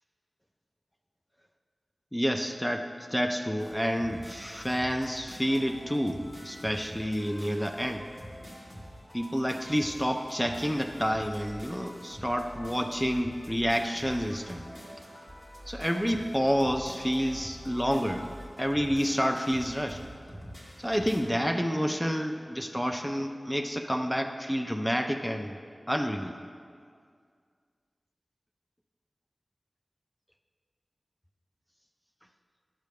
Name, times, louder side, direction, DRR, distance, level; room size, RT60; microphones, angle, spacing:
voice 1, 2.1-8.1 9.1-14.6 15.7-18.3 18.6-20.0 20.8-25.6 25.9-26.3, equal, 5° left, 4 dB, 0.4 m, -29 dB
sound 1, 3.6-21.2, equal, 35° left, 1.9 m, -46 dB
10.5 x 7.4 x 3.5 m, 2.1 s
wide cardioid pair, 65°, 0 cm